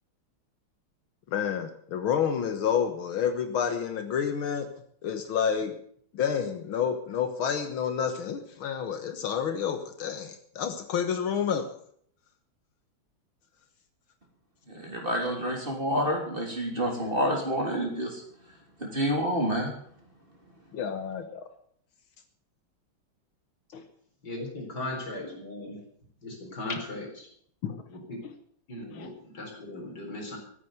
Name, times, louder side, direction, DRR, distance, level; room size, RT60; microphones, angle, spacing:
voice 1, 1.3-4.7 5.0-5.7 6.1-11.7 20.7-21.5 23.7-23.8 27.6-27.8 28.2-28.3 28.9-29.1, left 7 dB, 80° left, 8 dB, 2.1 m, -29 dB
voice 2, 14.7-18.2 18.8-19.7, equal, 25° right, 0 dB, 3.7 m, -28 dB
voice 3, 24.2-25.8 26.2-27.3 27.9-28.2 28.7-30.4, left 1 dB, 50° left, 2 dB, 4.7 m, -38 dB
14.5 x 9.3 x 8.1 m, 0.62 s
omnidirectional pair, 2.3 m